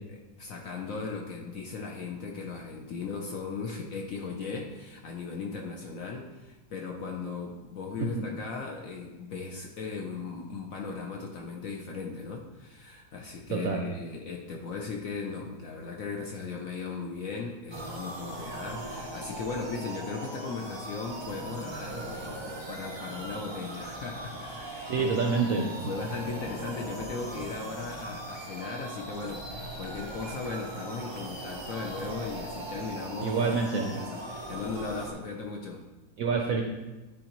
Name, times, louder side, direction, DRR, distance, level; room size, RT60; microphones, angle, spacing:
voice 1, 0.1-25.1 25.4-33.4 33.7-35.9, left 4 dB, 65° left, 1 dB, 0.8 m, -37 dB
voice 2, 13.5-13.8 24.9-25.9 33.2-33.8 36.2-36.6, right 5 dB, 70° right, 1 dB, 0.8 m, -27 dB
sound 1, 17.7-35.1, right 1 dB, 45° right, 0.3 m, -40 dB
9.9 x 4.0 x 3.0 m, 1.1 s
omnidirectional pair, 2.0 m